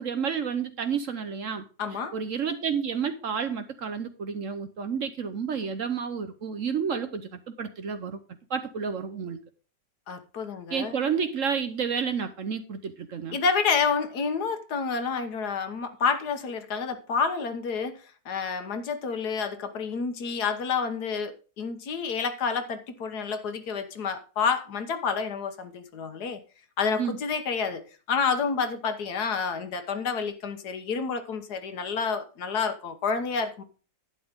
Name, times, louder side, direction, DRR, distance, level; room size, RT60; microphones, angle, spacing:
voice 1, 0.0-1.6 2.1-8.2 8.5-9.4 10.7-13.4 27.0-27.2, right 6 dB, 55° right, 1.1 m, -30 dB
voice 2, 1.8-2.1 10.1-11.0 13.3-18.0 18.2-26.4 26.8-33.6, left 5 dB, 65° left, 1.6 m, -29 dB
11.5 x 9.2 x 3.7 m
omnidirectional pair, 1.9 m